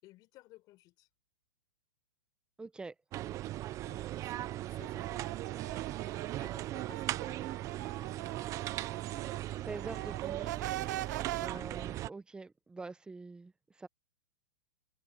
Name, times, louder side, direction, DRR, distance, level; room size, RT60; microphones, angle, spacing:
voice 1, 0.0-1.1 3.8-5.5 6.4-7.5 11.5-11.7, left 18 dB, 35° left, 5.5 m, -58 dB
voice 2, 2.6-2.9 9.5-10.7 11.4-13.9, right 3 dB, 10° right, 1.1 m, -45 dB
sound 1, 3.1-12.1, right 14 dB, 30° right, 1.1 m, -38 dB
sound 2, 4.8-9.5 9.8-11.5, right 16 dB, 60° right, 1.4 m, -42 dB
hypercardioid pair, 135°, 11 cm